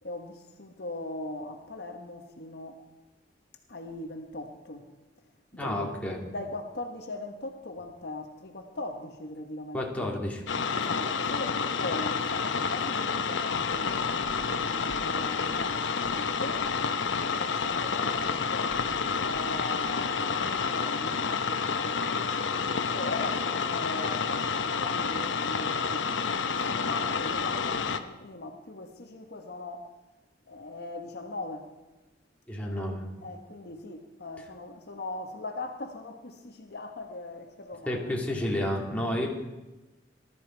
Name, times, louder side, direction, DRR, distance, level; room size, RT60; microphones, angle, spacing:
voice 1, 0.0-2.8 3.7-4.9 5.5-6.0 6.3-10.1 10.7-14.0 14.7-16.7 17.4-22.1 22.9-29.9 30.5-31.7 32.6-32.9 33.2-38.4, left 2 dB, 60° left, 1.2 m, -40 dB
voice 2, 5.5-6.2 9.7-10.4 32.5-33.3 37.9-39.3, left 1 dB, 10° left, 2.7 m, -31 dB
sound 1, 10.5-28.0, left 5 dB, 85° left, 0.8 m, -29 dB
19.5 x 12.5 x 4.6 m
head